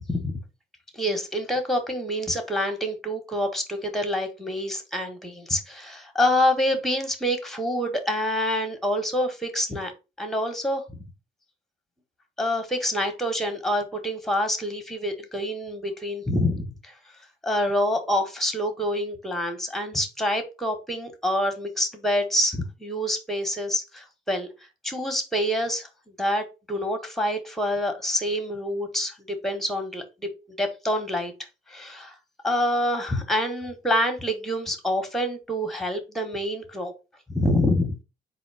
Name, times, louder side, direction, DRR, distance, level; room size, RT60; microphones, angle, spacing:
voice 1, 0.9-9.9 10.2-11.0 12.4-16.9 17.4-24.5 24.8-30.3 30.6-31.3 31.7-32.1 32.4-36.9 37.3-38.0, left 1 dB, ahead, 6 dB, 1.3 m, -26 dB
4.0 x 2.7 x 4.8 m, 0.28 s
cardioid pair, 90°, 20 cm